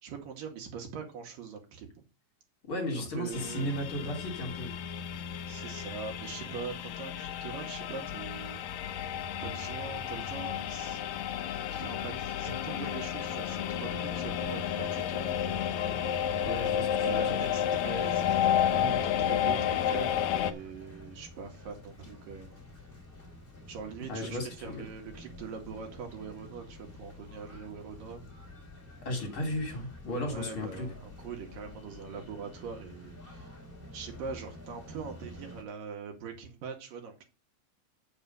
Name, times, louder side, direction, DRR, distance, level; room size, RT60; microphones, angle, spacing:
voice 1, 0.0-1.9 2.9-3.8 5.5-8.6 9.4-11.0 11.7-15.4 16.5-22.6 23.7-28.2 30.3-33.5 33.9-37.2, right 6 dB, 75° right, 3 dB, 3.9 m, -42 dB
voice 2, 2.6-4.7 16.4-17.4 24.0-24.8 29.0-30.9, left 1 dB, 35° left, 3 dB, 3.6 m, -35 dB
sound 1, 3.3-20.5, left 9 dB, 70° left, 1.8 m, -31 dB
sound 2, 18.0-35.6, left 1 dB, 15° left, 2.8 m, -49 dB
8.2 x 7.2 x 5.5 m, 0.29 s
omnidirectional pair, 4.1 m